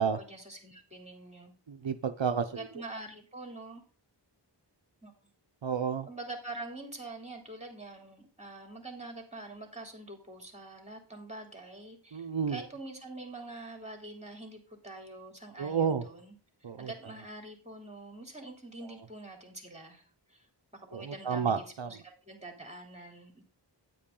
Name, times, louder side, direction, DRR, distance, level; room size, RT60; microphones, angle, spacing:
voice 1, 0.2-1.5 2.5-3.9 5.0-5.3 6.1-16.3 16.6-20.5 20.7-23.4, right 2 dB, 15° right, 2 dB, 3.1 m, -45 dB
voice 2, 1.7-2.6 5.6-6.1 12.1-12.6 15.6-16.0 16.6-16.9 20.9-22.0, right 6 dB, 80° right, 7 dB, 0.8 m, -31 dB
9.5 x 8.8 x 3.8 m, 0.37 s
wide cardioid pair, 45°, 44 cm